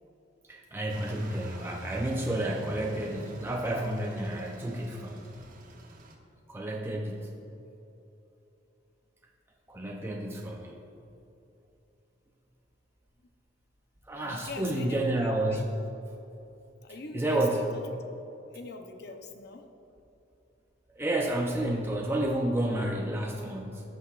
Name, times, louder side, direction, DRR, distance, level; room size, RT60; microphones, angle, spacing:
voice 1, 0.5-5.3 6.5-7.3 9.7-10.8 14.1-15.6 17.1-17.6 21.0-23.8, right 1 dB, 15° right, -1 dB, 0.6 m, -30 dB
sound 1, 0.9-6.2, right 1 dB, 50° right, 0.8 m, -45 dB
voice 2, 14.2-15.6 16.8-17.9 18.5-19.6, left 3 dB, 60° left, 5 dB, 0.7 m, -42 dB
15.5 x 6.0 x 2.4 m, 2.9 s
head